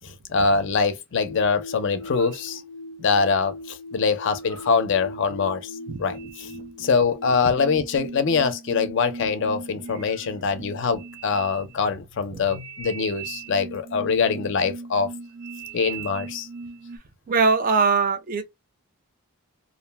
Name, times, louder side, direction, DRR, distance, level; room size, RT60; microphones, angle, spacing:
voice 1, 0.0-2.6 3.0-5.6 6.0-6.5 6.8-15.1 15.7-16.5, left 5 dB, 55° left, 0.4 m, -24 dB
sound 1, 1.3-17.0, right 2 dB, 70° right, 0.7 m, -39 dB
voice 2, 17.3-18.5, right 4 dB, 40° right, 0.4 m, -21 dB
2.4 x 2.0 x 3.2 m
head